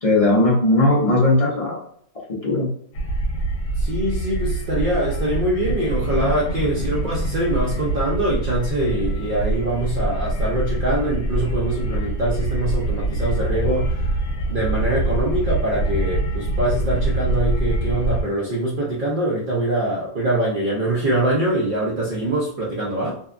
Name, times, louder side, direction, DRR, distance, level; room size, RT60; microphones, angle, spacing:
voice 1, 0.0-1.8 2.4-2.7, left 2 dB, 40° left, -5 dB, 0.5 m, -17 dB
sound 1, 2.9-18.2, right 1 dB, 75° left, 1.0 m, -24 dB
voice 2, 3.8-14.1 14.5-23.2, right 1 dB, 60° right, -5 dB, 0.5 m, -23 dB
2.7 x 2.2 x 2.4 m, 0.62 s
omnidirectional pair, 1.5 m